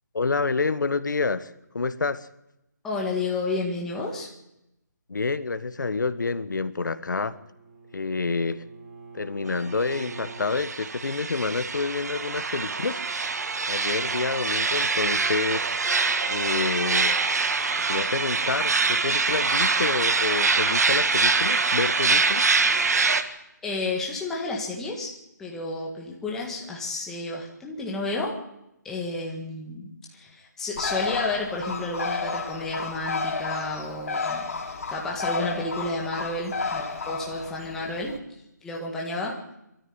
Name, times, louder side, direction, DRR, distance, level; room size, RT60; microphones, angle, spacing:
voice 1, 0.1-2.3 5.1-7.4 7.9-8.7 9.1-13.0 13.7-15.7 16.3-17.2 17.8-22.5, left 4 dB, 85° left, 1.3 m, -28 dB
voice 2, 2.8-4.3 23.6-25.1 25.4-28.3 28.8-38.1 38.6-39.4, left 2 dB, 5° left, 1.7 m, -31 dB
Bowed string instrument, 6.9-10.6, right 4 dB, 20° right, 4.7 m, -45 dB
sound 1, 9.8-23.2, right 4 dB, 60° right, 1.7 m, -24 dB
Bird, 30.8-38.2, left 4 dB, 50° left, 3.0 m, -32 dB
22.5 x 13.5 x 9.6 m
hypercardioid pair, 170°, 10 cm